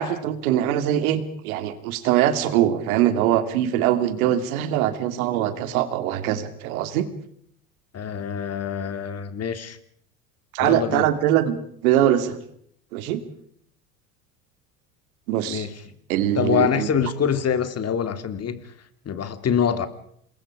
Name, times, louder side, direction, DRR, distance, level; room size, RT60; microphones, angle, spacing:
voice 1, 0.0-7.1 10.5-11.6 11.8-12.3 12.9-13.2 15.3-15.7 16.1-16.9, right 11 dB, 70° right, 11 dB, 2.6 m, -22 dB
voice 2, 7.9-9.8 10.6-11.1 15.4-15.8 16.3-18.7 19.0-19.9, left 7 dB, 35° left, 11 dB, 2.6 m, -25 dB
27.5 x 21.5 x 4.9 m, 0.67 s
hypercardioid pair, 80°, 43 cm